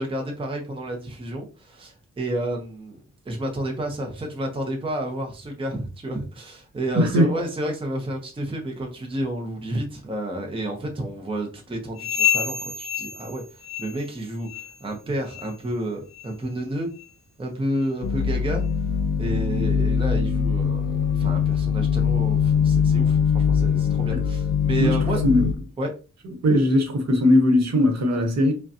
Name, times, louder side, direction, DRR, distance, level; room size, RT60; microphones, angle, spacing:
voice 1, 0.0-3.0 3.3-16.9 17.4-18.6 19.2-25.2 25.8-25.9, right 1 dB, 15° right, 0.7 m, -30 dB
voice 2, 6.9-7.3 24.1-24.2 24.8-25.0 25.2-25.5 26.4-28.5, left 1 dB, 60° right, 1.0 m, -19 dB
sound 1, 12.0-14.2 14.4-14.8 15.3-15.5 16.1-16.3 17.0-17.1 17.8-17.9, left 10 dB, 50° left, 1.1 m, -28 dB
sound 2, 18.0-25.5, left 7 dB, 85° left, 0.6 m, -22 dB
5.2 x 2.2 x 2.6 m
wide cardioid pair, 175°, 31 cm